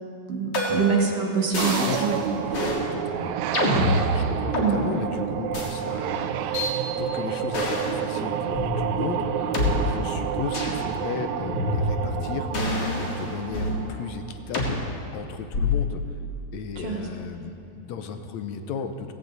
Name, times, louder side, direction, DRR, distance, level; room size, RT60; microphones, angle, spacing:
voice 1, 0.3-2.2 3.6-4.0 4.5-4.8 16.8-17.1, right 5 dB, 60° right, 0 dB, 2.5 m, -25 dB
sound 1, 0.5-1.0 1.5-2.1 2.5-2.8 3.5-4.7 5.5-5.7 6.5-6.7 7.5-8.0 8.5-8.7 9.5-9.7 10.5-10.8 11.5-12.1 12.5-13.8 14.5-14.7 15.5-15.9, left 2 dB, 40° left, 2.5 m, -26 dB
sound 2, 1.6-14.5, right 9 dB, 85° right, 2.0 m, -30 dB
voice 2, 1.9-3.9 4.1-6.6 7.0-12.5 13.0-14.8 15.1-16.0 16.5-19.1, left 6 dB, 75° left, 7 dB, 2.0 m, -35 dB
17.0 x 16.0 x 4.0 m, 2.6 s
omnidirectional pair, 3.3 m